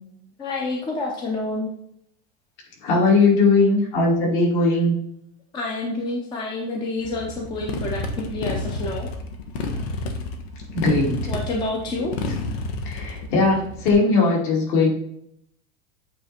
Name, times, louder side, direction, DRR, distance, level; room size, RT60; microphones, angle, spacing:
voice 1, 0.4-1.7 5.5-9.1 11.3-12.1, left 2 dB, 15° left, 0 dB, 0.6 m, -28 dB
voice 2, 2.8-4.9 10.7-11.2 12.8-14.9, left 3 dB, 55° left, -2 dB, 2.7 m, -19 dB
Motorcycle, 7.0-13.9, left 2 dB, 90° left, 1.3 m, -30 dB
8.3 x 3.3 x 4.3 m, 0.72 s
supercardioid pair, 180°, 30 cm